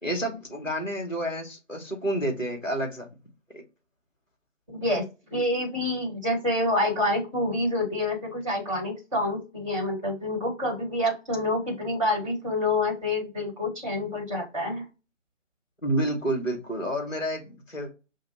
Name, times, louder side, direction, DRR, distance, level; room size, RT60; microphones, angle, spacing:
voice 1, 0.0-3.1 3.5-3.6 15.8-17.9, right 1 dB, ahead, 0 dB, 1.5 m, -29 dB
voice 2, 4.7-14.9, left 1 dB, 25° right, -3 dB, 2.0 m, -27 dB
6.0 x 2.6 x 2.9 m, 0.29 s
figure-of-eight pair, 160°, 38 cm